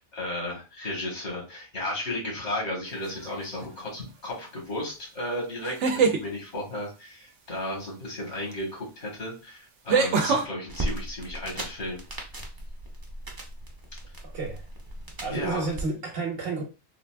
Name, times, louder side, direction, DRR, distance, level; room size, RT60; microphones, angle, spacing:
voice 1, 0.0-12.0 15.3-15.7, left 1 dB, 75° left, -2 dB, 1.8 m, -34 dB
sound 1, 3.0-3.5 5.6-6.2 8.5-8.6 9.9-10.5, right 5 dB, 80° right, 0.9 m, -23 dB
sound 2, 10.7-15.8, right 1 dB, 25° right, 0.6 m, -37 dB
voice 2, 14.3-14.7 15.2-16.6, right 3 dB, 55° right, 2 dB, 1.0 m, -30 dB
3.9 x 2.4 x 2.2 m, 0.30 s
omnidirectional pair, 1.2 m